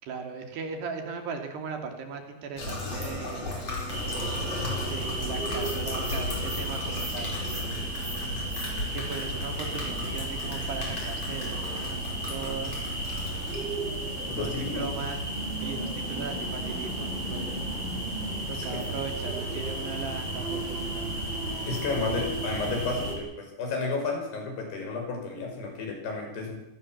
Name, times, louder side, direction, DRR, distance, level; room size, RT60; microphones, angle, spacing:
voice 1, 0.0-3.6 4.9-7.9 8.9-12.0 12.3-12.9 14.4-15.2 15.6-17.5 18.5-21.2, right 5 dB, 65° right, 5 dB, 4.7 m, -38 dB
sound 1, 2.6-13.6, left 2 dB, 35° left, 5.4 m, -36 dB
sound 2, 3.9-23.2, right 1 dB, 25° right, 6.6 m, -33 dB
voice 2, 14.3-14.9 18.5-18.8 21.7-26.6, left 3 dB, 60° left, 3 dB, 7.3 m, -32 dB
26.0 x 18.0 x 7.4 m, 0.92 s
omnidirectional pair, 5.3 m